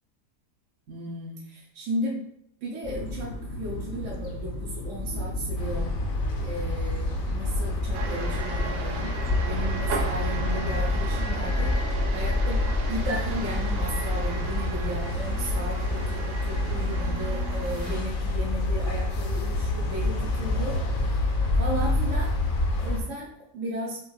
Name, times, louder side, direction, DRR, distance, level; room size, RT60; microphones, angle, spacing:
voice 1, 0.9-2.2 2.6-5.9 6.4-9.2 9.5-11.7 12.1-21.2 21.6-22.3 22.8-24.0, right 1 dB, 55° right, -4 dB, 1.0 m, -35 dB
sound 1, 2.8-21.1, left 1 dB, 55° left, 0.9 m, -37 dB
sound 2, 5.6-23.0, left 2 dB, 75° left, 1.4 m, -27 dB
sound 3, 7.9-18.0, right 4 dB, 80° right, 0.5 m, -36 dB
6.7 x 2.4 x 2.7 m, 0.72 s
omnidirectional pair, 1.8 m